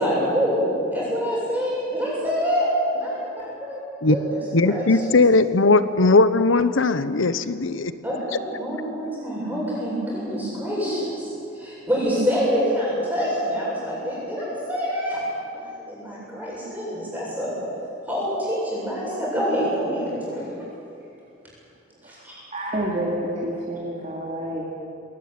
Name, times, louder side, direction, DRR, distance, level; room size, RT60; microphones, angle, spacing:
voice 1, 0.0-5.2 8.0-17.5 18.1-20.5 22.0-22.3, equal, 10° right, -7 dB, 7.7 m, -26 dB
voice 2, 4.5-7.9, left 3 dB, 80° left, 13 dB, 1.0 m, -18 dB
voice 3, 22.5-24.7, right 1 dB, 35° right, -4 dB, 2.6 m, -28 dB
21.0 x 18.5 x 9.6 m, 2.7 s
head